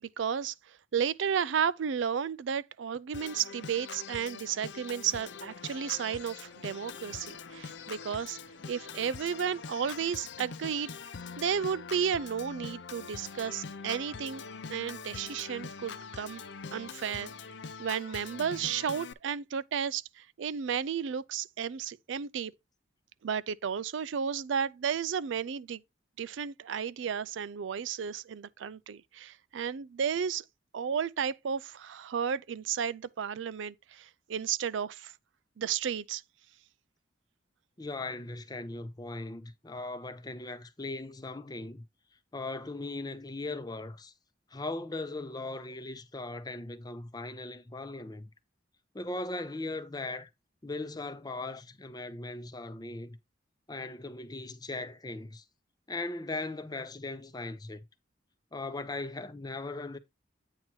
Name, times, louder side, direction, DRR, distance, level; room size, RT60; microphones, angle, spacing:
voice 1, 0.2-8.4 8.7-10.9 11.4-14.4 14.7-16.4 16.7-17.3 17.8-22.5 23.2-25.8 26.2-30.4 30.7-35.1 35.6-36.2, right 7 dB, 75° right, 0.4 m, -33 dB
Organ, 3.1-19.1, left 5 dB, 65° left, 0.5 m, -44 dB
sound 1, 3.5-11.1, left 3 dB, 80° left, 1.0 m, -59 dB
voice 2, 37.8-41.8 42.3-44.1 44.5-48.3 48.9-50.3 50.6-53.2 53.7-55.4 55.9-57.8 58.5-60.0, left 2 dB, 20° left, 0.7 m, -38 dB
8.8 x 3.0 x 6.0 m
head